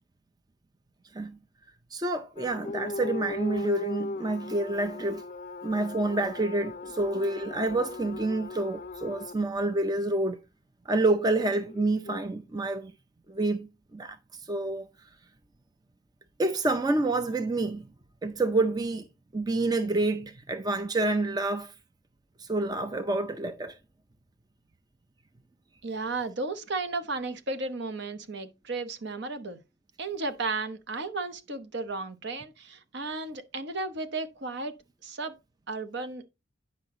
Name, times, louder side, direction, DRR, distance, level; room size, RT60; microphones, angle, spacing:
voice 1, 1.9-5.2 5.6-10.4 10.9-12.9 13.3-14.9 16.4-17.9 18.2-19.1 19.3-21.7 22.4-23.8, right 2 dB, 20° right, 0.5 m, -28 dB
sound 1, 2.4-9.4 11.1-12.2, left 3 dB, 40° left, 0.4 m, -38 dB
voice 2, 25.8-29.6 30.0-34.8 35.0-35.3 35.7-36.3, right 3 dB, 55° right, 1.0 m, -34 dB
9.7 x 5.4 x 3.8 m
head